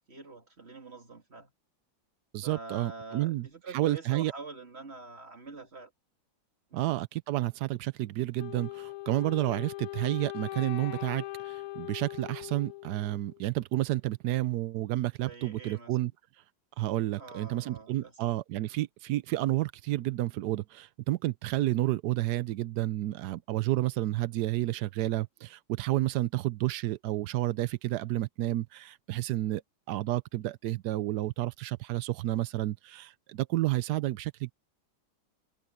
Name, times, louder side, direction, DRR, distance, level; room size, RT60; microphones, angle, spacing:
voice 1, 0.1-1.5 2.4-5.9 6.7-6.9 15.2-16.0 17.2-18.1, right 4 dB, 30° right, 2.9 m, -45 dB
voice 2, 2.3-4.3 6.7-16.1 16.8-29.6 29.9-34.5, right 16 dB, 80° right, 0.9 m, -30 dB
Wind instrument woodwind instrument, 8.4-13.4, left 18 dB, 80° left, 1.5 m, -40 dB
omnidirectional pair, 2.3 m